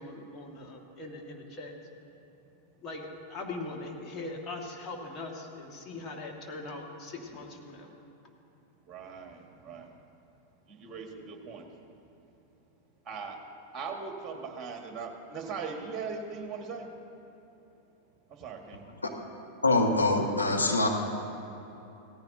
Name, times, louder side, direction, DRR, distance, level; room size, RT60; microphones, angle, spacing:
voice 1, 0.0-1.7 2.8-7.9, left 2 dB, 25° left, 0 dB, 1.9 m, -41 dB
voice 2, 8.9-9.9 10.7-11.6 13.1-13.4 13.7-16.9 18.4-18.9, right 5 dB, 25° right, 3 dB, 1.9 m, -39 dB
voice 3, 19.6-20.9, left 2 dB, 80° left, 1 dB, 1.4 m, -24 dB
17.5 x 14.5 x 2.8 m, 2.9 s
figure-of-eight pair, 90°, 0 cm